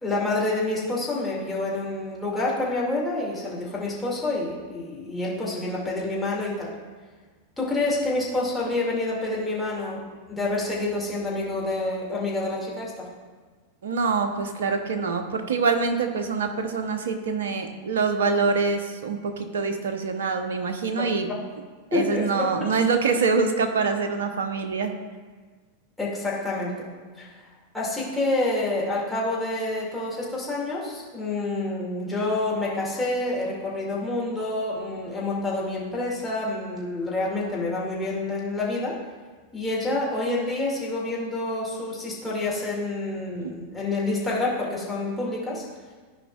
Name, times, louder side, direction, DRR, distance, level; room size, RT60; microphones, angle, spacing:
voice 1, 0.0-6.7 7.6-10.0 10.3-13.1 21.0-21.1 21.9-22.5 26.0-26.7 27.2-27.5 27.7-39.0 39.5-45.6, left 2 dB, 5° left, -6 dB, 2.1 m, -28 dB
voice 2, 13.8-21.3 21.9-24.9 43.4-43.5, right 4 dB, 65° right, 7 dB, 0.8 m, -25 dB
13.5 x 5.1 x 2.3 m, 1.4 s
figure-of-eight pair, 90°, 0 cm